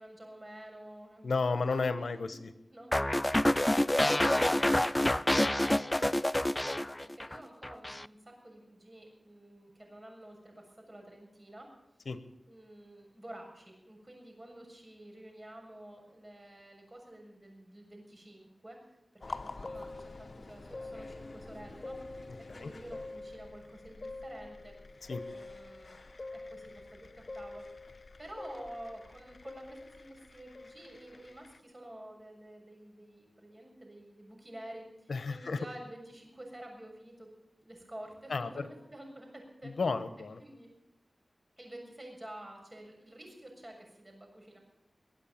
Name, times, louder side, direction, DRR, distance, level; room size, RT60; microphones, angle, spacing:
voice 1, 0.0-1.4 1.9-2.4 2.7-3.2 5.5-11.7 12.5-18.8 19.1-22.0 22.5-24.7 25.3-27.6 28.2-37.3 37.6-38.7 38.9-39.7 40.4-40.7 41.6-44.6, right 1 dB, 35° right, 2 dB, 6.7 m, -50 dB
voice 2, 1.2-2.5 12.1-12.2 22.6-22.7 25.1-25.2 35.1-35.6 38.3-38.5 39.6-40.4, left 4 dB, 80° left, 11 dB, 1.1 m, -32 dB
sound 1, 2.9-7.4 7.6-8.1, left 1 dB, 20° left, 0.5 m, -27 dB
sound 2, 19.2-31.6, left 2 dB, 60° left, 0.9 m, -46 dB
22.5 x 8.5 x 7.3 m, 0.92 s
cardioid pair, 50°, 0 cm